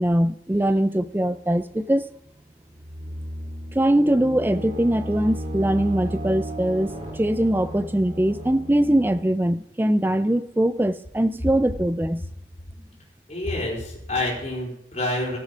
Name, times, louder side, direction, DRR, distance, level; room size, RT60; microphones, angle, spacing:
voice 1, 0.0-2.1 3.7-12.2, right 1 dB, 10° right, 13 dB, 0.4 m, -22 dB
sound 1, 1.0-1.7 2.7-9.2, right 1 dB, 35° right, 2.2 m, -35 dB
voice 2, 13.3-15.4, left 1 dB, 35° left, -4 dB, 4.5 m, -28 dB
14.0 x 8.2 x 5.1 m, 0.79 s
head